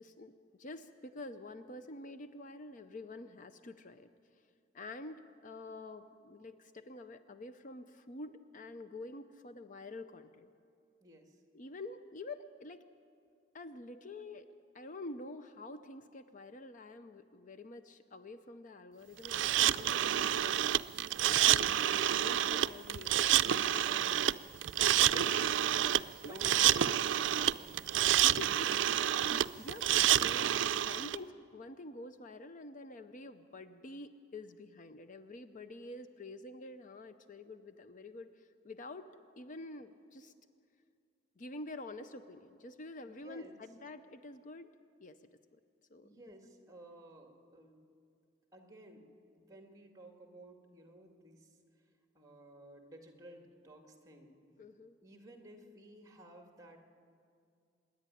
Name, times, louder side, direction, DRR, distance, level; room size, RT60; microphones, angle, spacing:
voice 1, 0.0-4.4 4.7-10.5 11.5-12.8 13.5-14.5 14.7-20.7 21.2-24.4 25.1-27.0 28.1-39.1 39.4-40.3 41.4-44.7 45.0-45.6 45.9-46.2 54.6-55.0, left 2 dB, 45° left, 10 dB, 0.6 m, -48 dB
voice 2, 11.0-11.4 24.8-25.0 26.2-26.5 27.1-28.1 29.5-29.8 43.1-43.6 46.0-47.8 48.5-49.1 49.4-51.6 52.1-54.4 55.0-56.8, right 1 dB, 20° right, 4 dB, 2.1 m, -55 dB
sound 1, 19.2-31.2, right 11 dB, 70° right, 0.4 m, -28 dB
25.5 x 10.5 x 9.9 m, 2.3 s
head